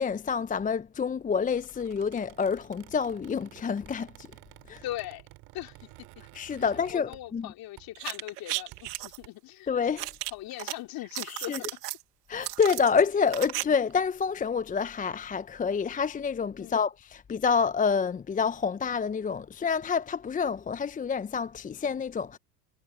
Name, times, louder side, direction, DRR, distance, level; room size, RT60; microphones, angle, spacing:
voice 1, 0.0-4.3 4.7-4.8 6.3-7.5 9.7-10.1 11.5-11.6 12.3-22.4, left 6 dB, 15° left, 0.8 m, -28 dB
Squeak, 1.4-7.5 7.8-8.0 8.5-9.3, right 22 dB, 55° right, 4.9 m, -53 dB
voice 2, 4.8-5.3 5.5-6.2 6.5-9.8 10.3-11.8 16.6-16.9, left 15 dB, 45° left, 3.3 m, -40 dB
sound 1, 7.9-9.2 10.0-10.7 11.0-12.0 12.4-13.6 13.9-14.0, right 17 dB, 70° right, 1.4 m, -35 dB
hypercardioid pair, 85°, 48 cm